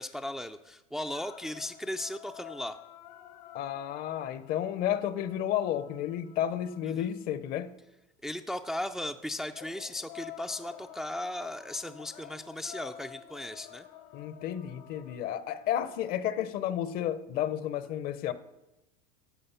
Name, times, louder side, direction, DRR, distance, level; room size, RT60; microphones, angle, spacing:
voice 1, 0.0-2.8 6.8-7.1 8.2-13.9, left 1 dB, ahead, 0.4 m, -37 dB
sound 1, 1.1-7.4 9.5-16.2, left 12 dB, 75° left, 1.5 m, -50 dB
voice 2, 3.5-7.7 14.1-18.3, left 10 dB, 50° left, 0.8 m, -32 dB
11.0 x 6.7 x 5.6 m
supercardioid pair, 110°, 20 cm